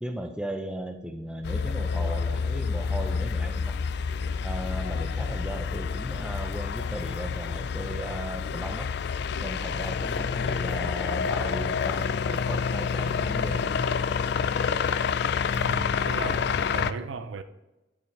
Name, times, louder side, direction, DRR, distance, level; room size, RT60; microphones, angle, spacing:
voice 1, 0.0-3.8 4.4-8.9 9.4-13.8, right 1 dB, 5° right, 0.6 m, -36 dB
sound 1, 1.4-16.9, left 6 dB, 60° left, 0.3 m, -28 dB
voice 2, 15.6-17.4, right 4 dB, 85° right, 0.5 m, -36 dB
12.0 x 6.1 x 3.2 m
head